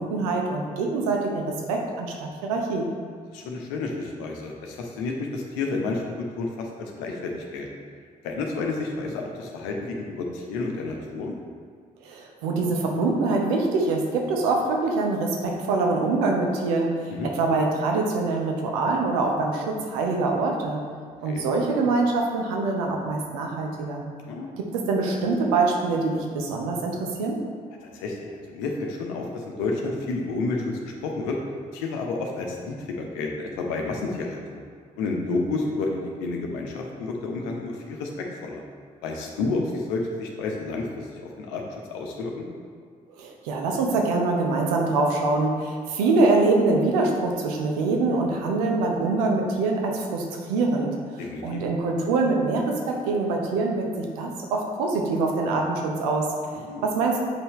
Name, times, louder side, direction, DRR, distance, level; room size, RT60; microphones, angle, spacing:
voice 1, 0.0-2.9 12.0-20.8 21.2-24.0 24.6-27.4 43.2-56.3 56.8-57.2, right 3 dB, 70° right, 1 dB, 0.9 m, -24 dB
voice 2, 3.3-7.7 8.2-11.3 17.2-17.3 21.2-21.4 24.2-24.5 27.8-31.4 31.7-34.6 35.0-38.6 39.0-41.1 41.4-41.6 41.9-42.5 51.2-51.6 56.5-56.9, left 3 dB, 65° left, 1 dB, 0.9 m, -30 dB
7.8 x 5.6 x 3.2 m, 2.1 s
figure-of-eight pair, 40°, 20 cm